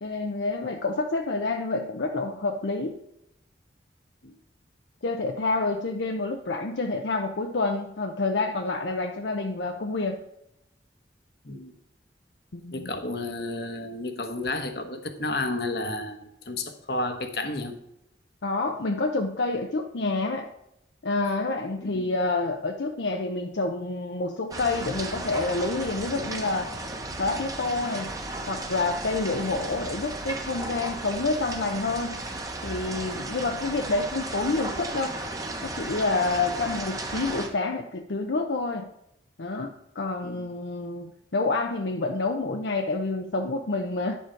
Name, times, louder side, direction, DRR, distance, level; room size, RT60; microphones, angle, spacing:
voice 1, 0.0-3.0 5.0-10.2 12.5-12.9 18.4-20.5 21.0-26.7 27.2-28.1 28.5-32.2 32.6-35.2 35.6-38.9 39.4-44.1, left 3 dB, 80° left, 3 dB, 0.7 m, -28 dB
voice 2, 12.7-17.8 21.8-22.0 40.2-40.4, left 2 dB, 60° left, 7 dB, 1.2 m, -32 dB
sound 1, 24.5-37.5, right 2 dB, 20° right, 1.0 m, -35 dB
10.5 x 7.2 x 4.6 m, 0.80 s
head